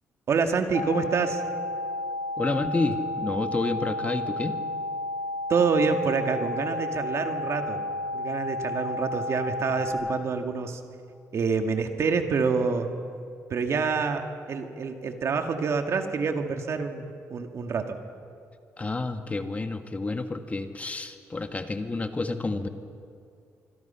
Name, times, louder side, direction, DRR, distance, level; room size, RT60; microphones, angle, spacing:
voice 1, 0.3-1.4 5.5-7.8 8.1-10.8 11.3-12.9 13.5-14.2 14.5-18.0, right 5 dB, 55° right, 5 dB, 2.2 m, -27 dB
sound 1, 0.7-9.9, left 1 dB, 70° left, 5.3 m, -32 dB
voice 2, 2.4-4.6 18.8-22.7, left 3 dB, 25° left, 7 dB, 1.6 m, -29 dB
25.0 x 25.0 x 5.8 m, 2.4 s
cardioid pair, 85°, 6 cm